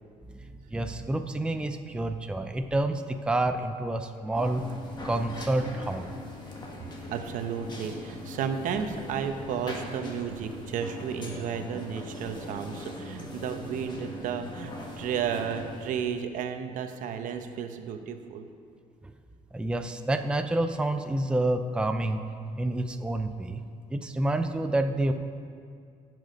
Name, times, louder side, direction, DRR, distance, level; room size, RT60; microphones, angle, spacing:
voice 1, 0.4-4.6 5.0-6.1 19.0-19.1 19.5-22.2 22.6-23.6 23.9-25.1, right 1 dB, 5° right, 7 dB, 0.5 m, -28 dB
sound 1, 4.3-15.9, left 1 dB, 35° left, 1.8 m, -40 dB
voice 2, 7.1-18.5, right 7 dB, 75° right, 7 dB, 0.9 m, -33 dB
16.5 x 6.3 x 5.2 m, 2.3 s
cardioid pair, 120°, 13 cm